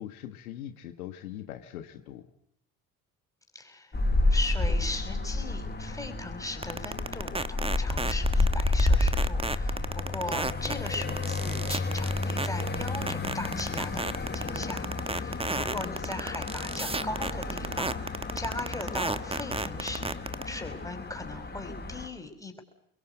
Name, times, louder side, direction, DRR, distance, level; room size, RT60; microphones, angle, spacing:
voice 1, 0.0-2.3, left 11 dB, 90° left, 8 dB, 1.4 m, -41 dB
voice 2, 3.5-3.9 4.3-22.6, left 2 dB, 10° left, 5 dB, 5.8 m, -39 dB
sound 1, 3.9-22.1, left 2 dB, 25° left, 5.6 m, -30 dB
sound 2, 6.6-20.4, right 3 dB, 15° right, 1.3 m, -31 dB
25.5 x 22.0 x 8.1 m, 0.72 s
hypercardioid pair, 60°, 42 cm